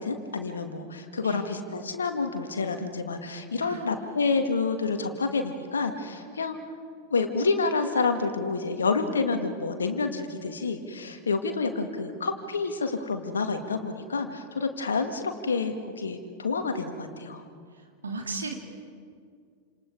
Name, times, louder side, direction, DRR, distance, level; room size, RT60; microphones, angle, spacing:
voice 1, 0.0-6.6 7.1-17.5, left 4 dB, 70° left, 6 dB, 2.2 m, -28 dB
voice 2, 3.6-4.0 18.0-18.5, right 3 dB, 75° right, 3 dB, 2.8 m, -35 dB
29.5 x 27.5 x 4.9 m, 2.2 s
figure-of-eight pair, 90°, 0 cm